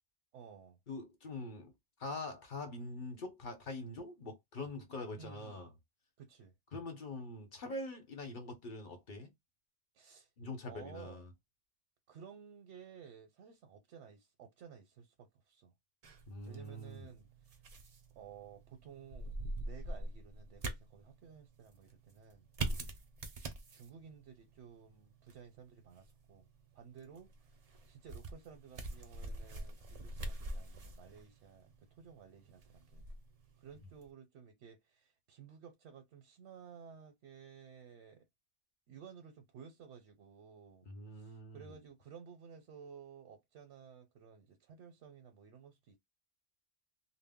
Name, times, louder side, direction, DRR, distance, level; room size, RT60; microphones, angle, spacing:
voice 1, 0.3-0.8 5.2-5.7 6.2-6.5 9.9-10.3 10.7-11.2 12.1-15.7 16.5-17.6 18.2-22.9 23.7-26.5 26.7-33.0 33.6-38.3 38.9-46.0, right 7 dB, 75° right, 0.9 m, -55 dB
voice 2, 0.9-1.7 2.0-5.7 6.7-9.3 10.4-11.3 16.3-17.1 22.7-22.9 40.9-41.7, left 2 dB, 50° left, 0.8 m, -44 dB
sound 1, 16.0-34.1, right 2 dB, 45° right, 0.5 m, -45 dB
2.1 x 2.0 x 3.5 m
omnidirectional pair, 1.2 m